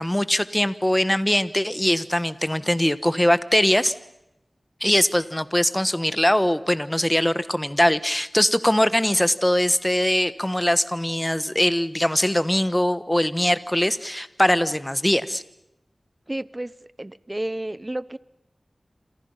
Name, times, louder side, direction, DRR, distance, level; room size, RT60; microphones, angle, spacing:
voice 1, 0.0-3.9 4.8-15.4, left 1 dB, 15° left, 14 dB, 1.3 m, -21 dB
voice 2, 16.3-16.7 17.0-18.2, right 1 dB, 25° right, 18 dB, 0.9 m, -31 dB
28.5 x 27.0 x 5.7 m, 0.88 s
wide cardioid pair, 60°, 0 cm